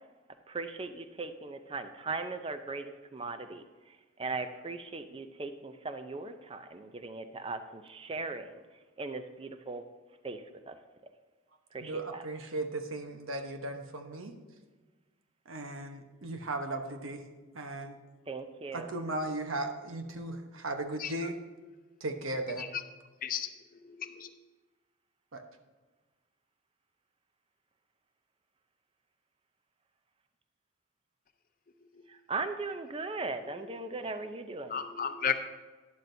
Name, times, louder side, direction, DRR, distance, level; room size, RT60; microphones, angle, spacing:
voice 1, 0.5-3.6 4.2-8.5 9.0-9.8 10.2-10.4 10.7-10.8 11.7-12.2 18.3-18.9 32.1-34.8, right 3 dB, 25° right, 9 dB, 0.5 m, -38 dB
voice 2, 11.8-14.3 15.5-17.2 17.5-18.0 18.7-21.4 22.0-22.7 25.3-25.4, right 2 dB, 80° right, 5 dB, 1.1 m, -36 dB
voice 3, 23.8-24.3 34.7-35.3, left 8 dB, 45° left, 8 dB, 0.6 m, -33 dB
12.0 x 11.0 x 2.7 m, 1.3 s
head